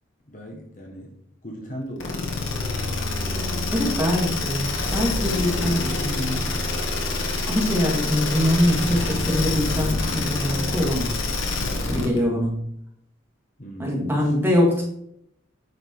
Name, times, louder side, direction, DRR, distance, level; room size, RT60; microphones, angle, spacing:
voice 1, 0.2-2.5 5.4-6.8 13.6-14.3, equal, 40° left, 0 dB, 1.4 m, -40 dB
sound 1, 2.0-12.2, left 3 dB, 75° left, 1.8 m, -26 dB
voice 2, 3.7-4.7 4.9-6.4 7.5-11.1 11.9-12.6 13.8-14.8, left 1 dB, 10° right, -3 dB, 2.4 m, -23 dB
9.5 x 5.2 x 4.8 m, 0.72 s
head